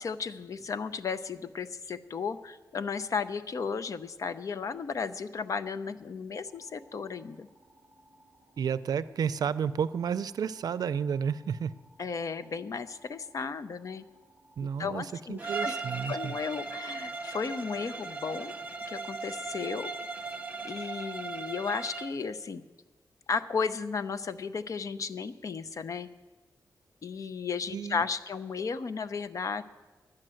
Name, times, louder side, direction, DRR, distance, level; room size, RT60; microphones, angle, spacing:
voice 1, 0.0-7.5 12.0-14.0 14.6-15.8 16.1-18.5 18.9-19.9 20.6-22.6 23.3-26.1 27.0-29.6, left 5 dB, 55° left, 12 dB, 0.6 m, -34 dB
sound 1, 6.5-21.2, equal, 20° left, 3.5 m, -62 dB
voice 2, 8.6-11.7 14.6-15.0 15.3-16.3 27.7-28.0, right 7 dB, 75° right, 15 dB, 0.4 m, -31 dB
Bowed string instrument, 15.4-22.2, right 4 dB, 20° right, 0.9 m, -37 dB
12.0 x 9.8 x 7.7 m, 1.3 s
wide cardioid pair, 120°, 7 cm